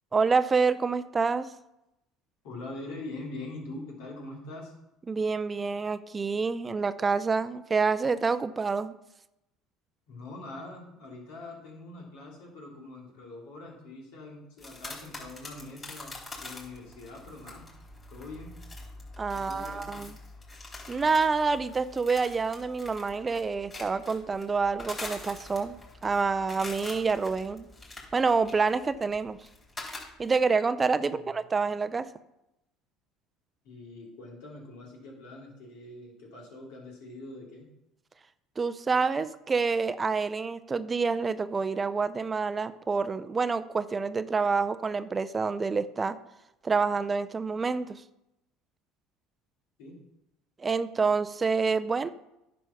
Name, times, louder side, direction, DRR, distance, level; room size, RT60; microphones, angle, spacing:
voice 1, 0.1-1.5 5.1-8.9 19.2-20.1 20.9-27.7 28.1-29.4 30.2-32.1 38.6-46.2 46.6-48.0 50.6-52.1, right 4 dB, 25° right, 14 dB, 0.5 m, -27 dB
voice 2, 2.4-4.7 10.1-17.6 18.1-18.5 19.3-20.0 31.0-31.3 33.6-37.7 49.8-50.0, left 2 dB, 75° left, -1 dB, 2.8 m, -43 dB
sound 1, 14.6-30.4, left 2 dB, 30° left, 3.7 m, -45 dB
10.0 x 5.2 x 5.8 m, 0.89 s
hypercardioid pair, 80°, 0 cm